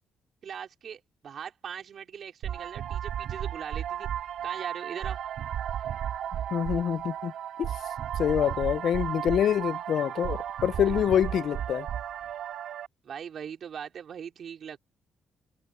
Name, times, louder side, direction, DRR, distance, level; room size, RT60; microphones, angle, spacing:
voice 1, 0.4-4.1 4.4-5.2 10.8-11.1 13.0-14.8, right 8 dB, 60° right, 4.3 m, -40 dB
sound 1, 2.4-12.9, right 10 dB, 75° right, 2.4 m, -34 dB
voice 2, 6.5-7.3 7.6-7.7 8.2-11.9, left 9 dB, 65° left, 0.5 m, -26 dB
cardioid pair, 90°, 0 cm